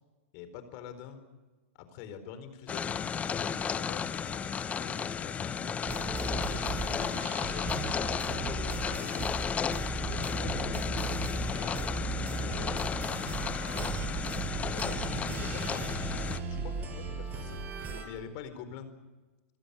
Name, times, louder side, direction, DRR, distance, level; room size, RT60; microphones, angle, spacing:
voice 1, 0.3-1.2 1.9-5.8 6.1-6.8 7.4-9.3 10.0-14.1 14.7-18.9, left 7 dB, 45° left, 10 dB, 4.2 m, -46 dB
sound 1, 2.7-16.4, left 7 dB, 20° left, 1.0 m, -34 dB
sound 2, 5.9-18.0, right 4 dB, 25° right, 5.8 m, -36 dB
sound 3, 13.7-14.2 14.6-14.7 14.9-16.0 17.3-18.3, right 7 dB, 60° right, 4.5 m, -52 dB
27.5 x 17.0 x 8.5 m, 1.3 s
hypercardioid pair, 120°, 7 cm